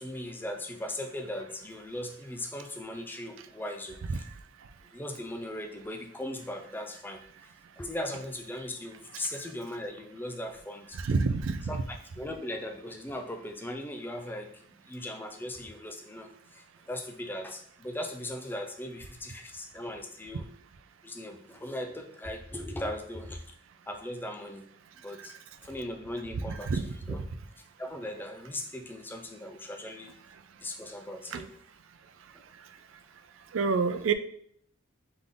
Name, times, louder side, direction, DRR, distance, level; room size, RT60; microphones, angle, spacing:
voice 1, 0.0-4.3 4.9-11.1 11.7-20.5 21.0-23.6 23.9-24.7 25.0-25.4 25.6-27.2 27.8-30.1 30.6-31.5, left 1 dB, 10° left, 5 dB, 0.3 m, -39 dB
voice 2, 10.9-11.8 26.7-26.8 31.3-31.4 33.5-34.1, right 4 dB, 65° right, 11 dB, 0.4 m, -27 dB
3.7 x 3.4 x 3.5 m, 0.66 s
head